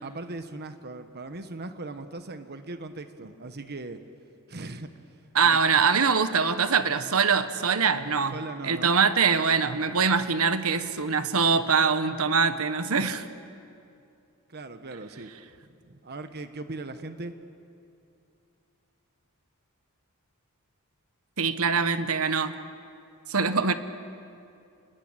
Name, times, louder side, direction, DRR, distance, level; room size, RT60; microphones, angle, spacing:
voice 1, 0.0-4.0 4.5-4.9 8.3-8.9 14.5-15.3 15.7-17.3, right 2 dB, 45° right, 9 dB, 1.2 m, -39 dB
voice 2, 5.3-8.4 8.6-13.2 21.4-22.5 23.3-23.7, right 5 dB, 70° right, 11 dB, 1.4 m, -23 dB
29.5 x 21.0 x 9.1 m, 2.6 s
head